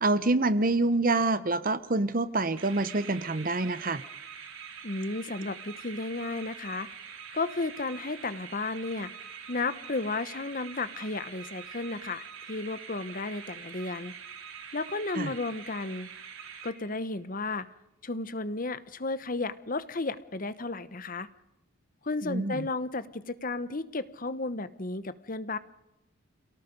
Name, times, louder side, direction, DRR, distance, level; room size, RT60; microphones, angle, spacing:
voice 1, 0.0-4.0 15.1-15.3 22.2-22.7, right 2 dB, 40° right, 14 dB, 1.0 m, -26 dB
sound 1, 2.6-17.2, right 7 dB, 70° right, 3.7 m, -45 dB
voice 2, 4.8-6.9 7.3-9.1 9.5-14.1 14.7-16.1 16.6-17.7 18.0-21.3 22.0-25.6, left 3 dB, 40° left, 13 dB, 1.0 m, -33 dB
28.0 x 18.0 x 5.3 m, 0.87 s
head